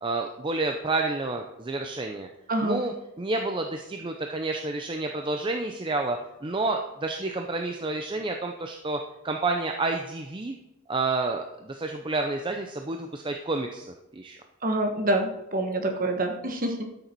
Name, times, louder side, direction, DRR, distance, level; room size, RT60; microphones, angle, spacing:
voice 1, 0.0-2.3 2.6-9.0 9.2-10.6 10.9-14.4, right 3 dB, 20° right, 4 dB, 0.5 m, -29 dB
voice 2, 2.5-2.8 14.6-16.8, right 1 dB, 40° right, 4 dB, 1.3 m, -26 dB
12.5 x 6.7 x 4.6 m, 0.91 s
head